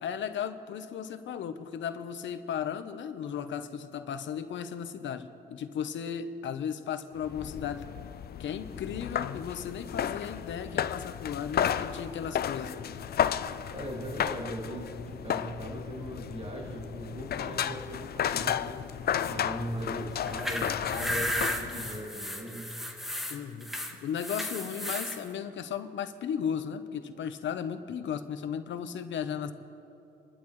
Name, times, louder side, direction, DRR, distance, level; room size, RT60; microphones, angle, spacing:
voice 1, 0.0-7.9 8.4-12.9 23.3-29.5, left 8 dB, 70° left, 9 dB, 1.0 m, -35 dB
sound 1, 7.2-22.1, left 9 dB, 50° left, 0.5 m, -33 dB
voice 2, 13.7-19.0 19.3-22.8, equal, 30° right, -1 dB, 2.6 m, -39 dB
sound 2, 20.2-25.2, equal, ahead, 1.6 m, -34 dB
30.0 x 12.0 x 3.3 m, 2.9 s
cardioid pair, 90°, 20 cm